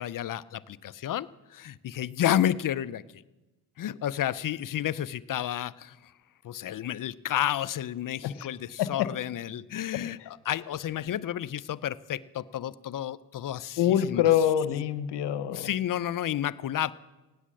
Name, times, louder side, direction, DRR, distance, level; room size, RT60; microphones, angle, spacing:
voice 1, 0.0-3.2 3.8-6.1 6.4-14.3 15.5-16.9, left 11 dB, 50° left, 17 dB, 0.6 m, -31 dB
voice 2, 13.8-15.7, left 10 dB, 75° left, 13 dB, 1.0 m, -25 dB
16.5 x 10.0 x 7.6 m, 1.1 s
cardioid pair, 75°, 41 cm